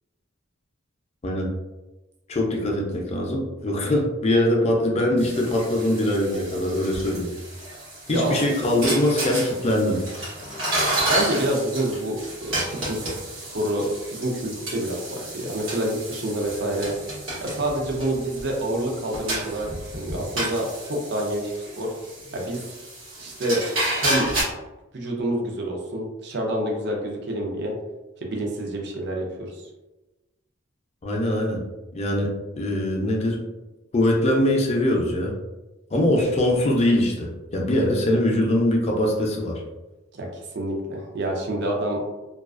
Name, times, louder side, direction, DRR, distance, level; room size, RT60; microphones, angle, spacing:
voice 1, 2.3-7.3 8.1-10.0 31.0-31.6 31.9-33.4 33.9-35.3 35.9-39.6, left 1 dB, 35° left, 0 dB, 0.4 m, -22 dB
sound 1, 5.2-24.4, right 1 dB, 75° right, 1.1 m, -31 dB
voice 2, 11.1-16.9 17.4-19.7 19.9-21.9 22.3-22.7 23.2-23.6 23.9-24.3 24.9-27.7 28.2-29.5 40.1-40.3 40.5-42.0, right 1 dB, 55° right, 0 dB, 0.5 m, -27 dB
2.3 x 2.3 x 2.3 m, 1.1 s
head